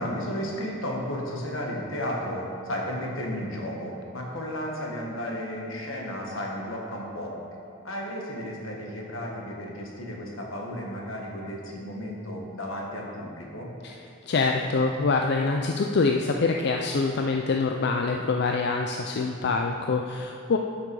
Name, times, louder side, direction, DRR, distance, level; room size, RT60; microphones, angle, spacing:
voice 1, 0.0-7.4 7.8-13.8, equal, 80° left, -1 dB, 1.7 m, -33 dB
voice 2, 14.3-20.6, left 4 dB, 55° left, 2 dB, 0.5 m, -25 dB
11.5 x 6.0 x 4.8 m, 2.5 s
head